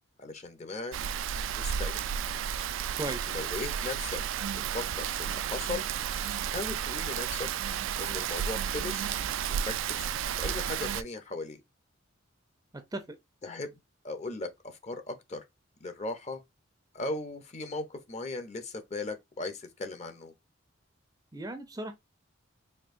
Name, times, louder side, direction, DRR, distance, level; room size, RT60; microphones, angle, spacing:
voice 1, 0.2-1.0 1.5-2.0 3.3-4.2 4.6-5.9 6.5-7.5 8.0-9.1 9.6-10.1 10.4-11.6 13.4-13.8 14.0-15.4 15.8-16.4 16.9-20.3, left 2 dB, 35° left, 0.6 m, -37 dB
Rain, 0.9-11.0, right 8 dB, 70° right, 0.3 m, -32 dB
voice 2, 2.9-3.3 12.7-13.2 21.3-21.9, right 1 dB, 20° right, 0.5 m, -37 dB
4.4 x 2.7 x 2.5 m
head